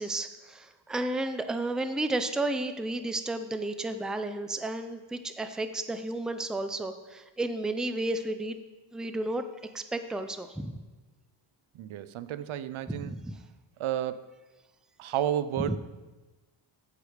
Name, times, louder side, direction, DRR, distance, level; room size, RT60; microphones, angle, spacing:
voice 1, 0.0-8.6 8.9-9.4 9.7-10.8 12.9-13.4 15.6-15.8, right 2 dB, ahead, 8 dB, 0.4 m, -32 dB
voice 2, 11.7-13.1 13.8-14.3 15.0-15.8, right 11 dB, 80° right, 13 dB, 0.6 m, -31 dB
14.5 x 4.9 x 5.0 m, 1.2 s
wide cardioid pair, 115°, 48 cm